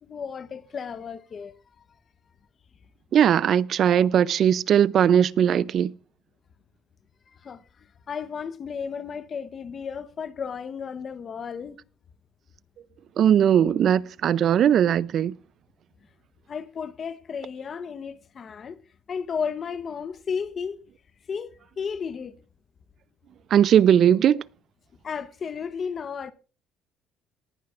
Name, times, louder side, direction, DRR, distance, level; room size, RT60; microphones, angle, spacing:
voice 1, 0.0-1.5 7.4-7.6 8.1-11.8 16.5-18.8 19.1-20.8 21.3-22.3 25.0-26.3, left 6 dB, 35° left, 0.9 m, -33 dB
voice 2, 3.1-5.9 13.2-15.3 23.5-24.4, right 9 dB, 45° right, 0.4 m, -19 dB
19.0 x 10.5 x 2.5 m
cardioid pair, 140°, 0 cm